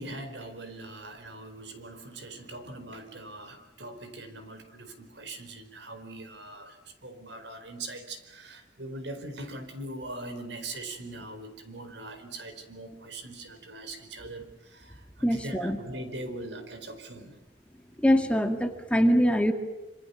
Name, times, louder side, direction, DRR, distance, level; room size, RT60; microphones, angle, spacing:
voice 1, 0.0-17.4, right 2 dB, 75° right, 4.7 m, -41 dB
voice 2, 15.2-15.8 18.0-19.5, equal, 5° left, 1.9 m, -23 dB
27.0 x 27.0 x 7.1 m
head